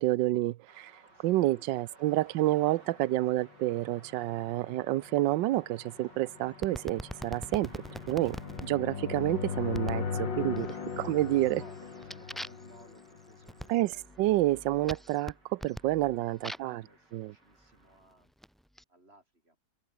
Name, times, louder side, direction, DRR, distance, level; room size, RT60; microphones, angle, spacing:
voice 1, 0.0-0.9 1.2-10.7 11.0-11.6 13.7-13.9 14.2-16.8 17.1-17.3, right 16 dB, 70° right, 1.2 m, -29 dB
sound 1, 0.7-18.0, right 2 dB, 55° right, 6.7 m, -59 dB
voice 2, 1.1-2.2 10.6-10.9 11.2-14.3 15.8-18.3 18.9-19.6, right 1 dB, 25° right, 8.3 m, -60 dB
sound 2, 3.0-13.8, left 6 dB, 60° left, 3.0 m, -39 dB
sound 3, 6.6-8.7 9.7-10.1 10.5-11.0 11.4-16.8 17.6-18.8, equal, ahead, 2.2 m, -44 dB
open air
omnidirectional pair, 2.3 m